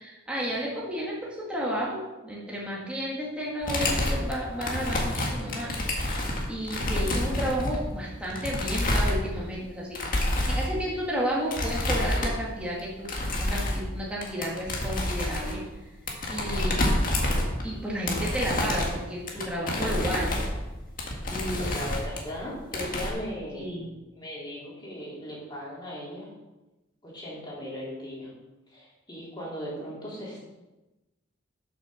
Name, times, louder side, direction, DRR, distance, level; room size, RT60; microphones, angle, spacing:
voice 1, 0.0-15.8 16.3-16.9 17.6-20.4 21.3-21.9 23.5-23.9, equal, 5° right, -5 dB, 1.9 m, -32 dB
sound 1, 3.6-9.6 9.9-10.7 11.5-12.5 12.8-13.9 14.2-17.8 18.0-22.4 22.7-23.1, left 1 dB, 45° left, 1.8 m, -28 dB
voice 2, 7.0-7.3 21.6-23.7 24.1-26.3 27.0-28.3 28.7-30.5, equal, 25° left, -6 dB, 3.5 m, -38 dB
8.0 x 6.5 x 6.3 m, 1.1 s
head